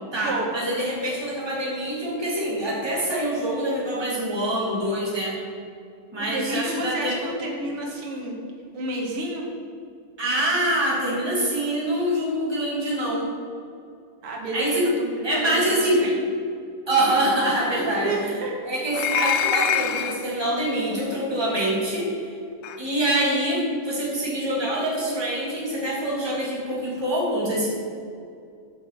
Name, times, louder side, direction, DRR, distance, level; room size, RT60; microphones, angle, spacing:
voice 1, 0.1-5.4 6.1-7.3 10.2-13.3 14.5-14.9 15.2-16.0 16.9-18.3 18.6-22.1 22.8-27.7, right 1 dB, 10° right, -5 dB, 2.2 m, -25 dB
voice 2, 6.2-8.4 8.7-9.5 14.2-16.2 17.8-18.5, right 2 dB, 90° right, 0 dB, 2.3 m, -30 dB
sound 1, 18.9-20.3 21.6-21.7 22.6-22.8, left 9 dB, 80° left, 1.4 m, -25 dB
7.8 x 5.4 x 6.6 m, 2.4 s
omnidirectional pair, 2.4 m